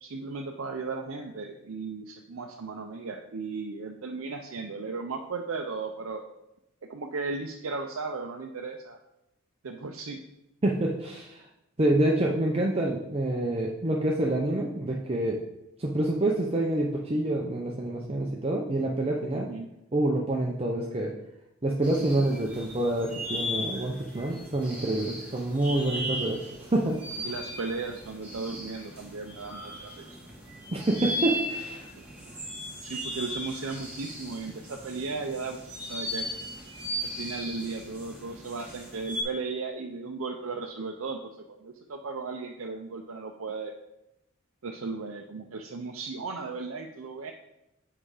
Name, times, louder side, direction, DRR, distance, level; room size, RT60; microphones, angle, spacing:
voice 1, 0.0-6.2 6.9-9.0 9.6-10.2 19.3-19.7 27.2-30.1 32.8-36.3 37.0-41.3 41.6-43.7 44.6-47.3, right 4 dB, 75° right, 2 dB, 0.6 m, -36 dB
voice 2, 10.6-11.4 11.8-15.4 15.8-19.5 19.9-21.1 21.6-26.4 26.7-27.3 30.7-31.9, right 1 dB, 30° right, -1 dB, 0.7 m, -27 dB
sound 1, 21.8-39.2, equal, 5° right, 1.5 m, -37 dB
7.8 x 4.9 x 4.9 m, 0.87 s
head